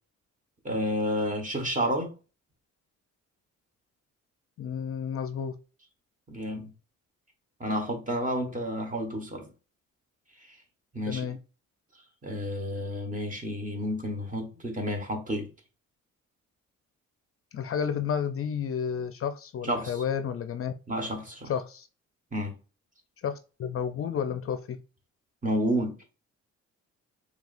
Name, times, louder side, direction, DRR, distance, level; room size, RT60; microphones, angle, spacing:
voice 1, 0.6-2.1 6.3-6.7 7.6-9.5 10.9-11.3 12.2-15.5 19.6-20.0 20.9-21.5 22.3-22.5 25.4-26.0, equal, 25° right, 1.4 m, -30 dB
voice 2, 4.6-5.6 11.1-11.4 17.5-20.7 21.5-21.9 23.2-24.8, left 7 dB, 50° left, 0.5 m, -31 dB
4.8 x 3.3 x 2.5 m
cardioid pair, 90°, 30 cm